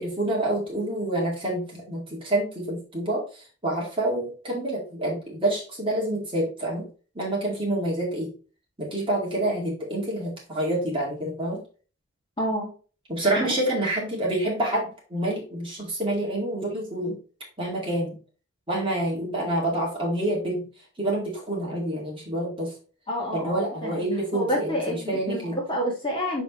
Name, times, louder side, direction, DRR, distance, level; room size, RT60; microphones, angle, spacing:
voice 1, 0.0-6.9 7.1-8.3 8.8-11.6 13.1-17.2 17.6-18.2 18.7-20.7 21.0-22.7 23.3-25.6, right 1 dB, 25° right, -3 dB, 2.2 m, -27 dB
voice 2, 12.4-12.7 23.1-24.0 24.3-26.4, equal, 25° left, -2 dB, 1.7 m, -28 dB
6.2 x 5.1 x 3.1 m, 0.37 s
head